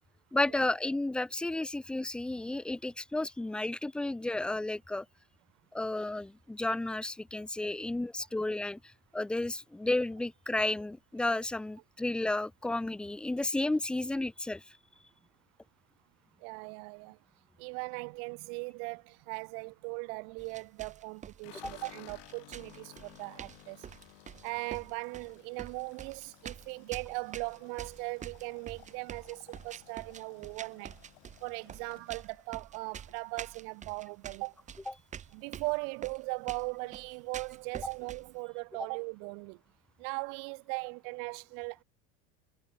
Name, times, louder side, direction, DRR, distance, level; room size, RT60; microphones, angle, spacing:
voice 1, 0.3-5.1 5.7-8.8 9.1-14.6 21.6-21.7, left 2 dB, 5° left, 0.3 m, -32 dB
voice 2, 16.4-17.2 17.6-23.9 24.4-30.9 31.4-34.5 35.3-39.6 40.0-41.8, right 40 dB or more, 65° right, 1.3 m, -39 dB
sound 1, 20.4-38.3, right 8 dB, 25° right, 1.1 m, -46 dB
sound 2, 21.4-33.7 34.0-34.6 34.9-35.0 35.3-36.0, left 37 dB, 70° left, 6.0 m, -57 dB
supercardioid pair, 130°, 30 cm